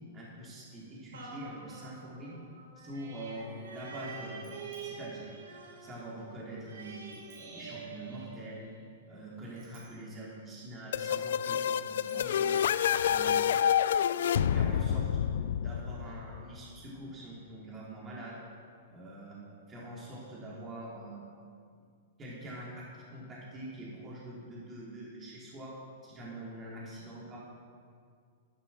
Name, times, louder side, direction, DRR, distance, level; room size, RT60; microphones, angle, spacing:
voice 1, 0.0-2.4 2.8-4.5 4.8-5.4 5.8-7.2 7.5-8.7 9.1-12.6 13.0-13.4 14.5-18.4 18.9-19.4 19.7-21.2 22.2-25.7 26.0-27.4, right 1 dB, 25° right, -6 dB, 4.3 m, -44 dB
sound 1, 1.1-9.0 9.5-9.6, right 5 dB, 85° right, 3.2 m, -47 dB
Bicycle bell, 2.8-13.9, right 6 dB, 60° right, 4.0 m, -64 dB
sound 2, 10.9-16.6, left 9 dB, 75° left, 0.5 m, -28 dB
12.5 x 11.5 x 6.2 m, 2.2 s
hypercardioid pair, 130°, 0 cm